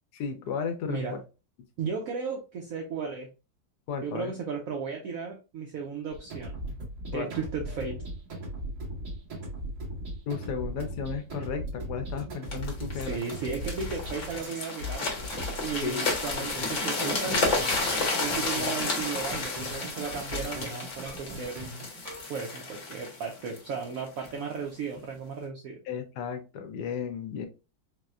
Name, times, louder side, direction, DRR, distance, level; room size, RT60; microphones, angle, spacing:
voice 1, 0.1-1.0 3.9-4.3 7.1-7.3 10.3-13.2 15.8-16.0 25.9-27.5, left 6 dB, 70° left, 7 dB, 1.1 m, -34 dB
voice 2, 1.8-3.3 4.0-6.6 7.1-8.0 12.9-17.6 18.2-21.6 22.3-25.8, right 5 dB, 80° right, 2 dB, 0.7 m, -35 dB
sound 1, 6.1-22.2, right 1 dB, 60° right, 1.9 m, -38 dB
sound 2, 12.5-24.4 25.0-25.1, left 3 dB, 45° left, 1.1 m, -32 dB
4.1 x 2.1 x 2.4 m, 0.31 s
omnidirectional pair, 2.0 m